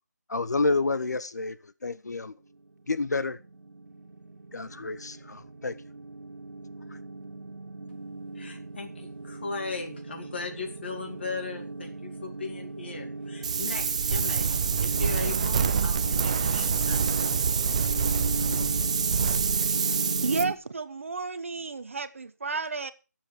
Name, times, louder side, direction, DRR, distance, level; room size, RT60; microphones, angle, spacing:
voice 1, 0.3-1.6 1.8-2.3 2.9-3.4 4.5-5.8, left 3 dB, 70° left, 0.8 m, -29 dB
sound 1, 2.7-2.8 2.9-20.5, right 3 dB, 85° right, 1.8 m, -37 dB
voice 2, 8.3-14.5 14.8-17.0, left 4 dB, 40° left, 2.3 m, -38 dB
Wind, 13.4-20.4, right 6 dB, 20° right, 0.6 m, -26 dB
Drawer open or close, 17.8-18.9 19.8-19.9 20.3-20.4, left 2 dB, 10° left, 3.2 m, -48 dB
voice 3, 20.2-22.9, right 4 dB, 45° right, 0.9 m, -31 dB
18.0 x 7.5 x 4.7 m
figure-of-eight pair, 170°, 9 cm